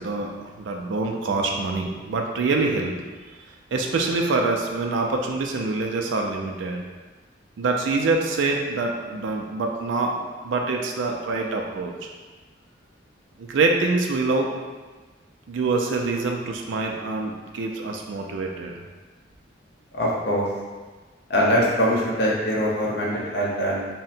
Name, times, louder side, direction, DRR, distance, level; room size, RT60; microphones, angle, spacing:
voice 1, 0.0-3.0 3.3-6.8 7.6-12.1 13.4-14.5 15.5-18.8, right 3 dB, 80° right, 1 dB, 0.4 m, -25 dB
voice 2, 19.9-20.5 21.3-23.9, equal, 60° left, -4 dB, 0.8 m, -22 dB
3.6 x 2.1 x 4.2 m, 1.3 s
head